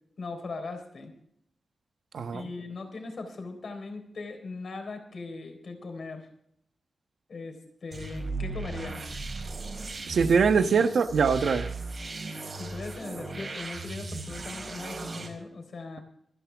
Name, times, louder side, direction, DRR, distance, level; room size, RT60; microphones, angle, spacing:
voice 1, 0.2-1.1 2.3-6.3 7.3-9.0 12.6-16.0, left 3 dB, 55° left, 3.9 m, -39 dB
voice 2, 2.1-2.5 10.1-11.7, right 5 dB, 75° right, 1.1 m, -23 dB
sound 1, 7.9-15.3, right 3 dB, 45° right, 4.2 m, -37 dB
26.0 x 10.0 x 3.5 m
wide cardioid pair, 175°, 0 cm